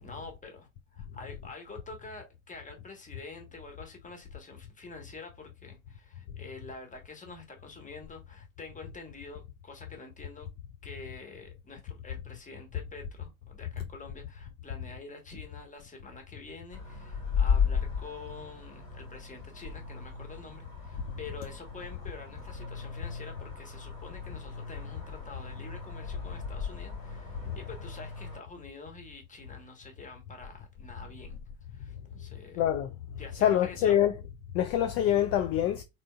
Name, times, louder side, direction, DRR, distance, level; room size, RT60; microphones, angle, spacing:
voice 1, 0.0-10.5 10.8-31.4 31.7-32.7 33.2-34.0, left 3 dB, 20° left, 1.3 m, -47 dB
sound 1, 16.7-28.4, left 6 dB, 65° left, 2.3 m, -35 dB
voice 2, 32.6-32.9 33.4-34.1 34.5-35.8, left 10 dB, 40° left, 0.4 m, -25 dB
3.7 x 3.3 x 2.3 m
figure-of-eight pair, 65°, 39 cm